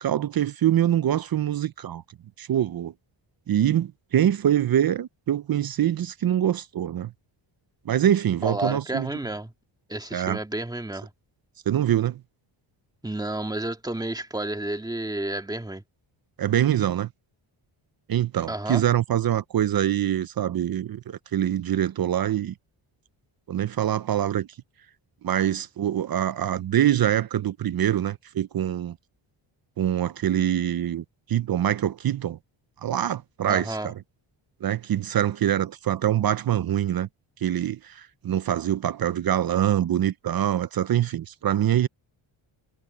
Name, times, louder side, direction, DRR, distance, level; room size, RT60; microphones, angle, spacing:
voice 1, 0.0-2.0 2.4-2.9 3.5-7.1 7.9-9.1 10.1-10.4 11.7-12.2 16.4-17.1 18.1-22.5 23.5-24.5 25.2-29.0 29.8-32.4 32.8-34.0 34.6-37.1 37.4-41.9, right 11 dB, 45° right, 0.6 m, -24 dB
voice 2, 8.4-9.5 9.9-11.1 13.0-15.8 18.5-18.8 33.5-33.9, right 1 dB, 10° right, 2.2 m, -31 dB
cardioid pair, 120°, 50 cm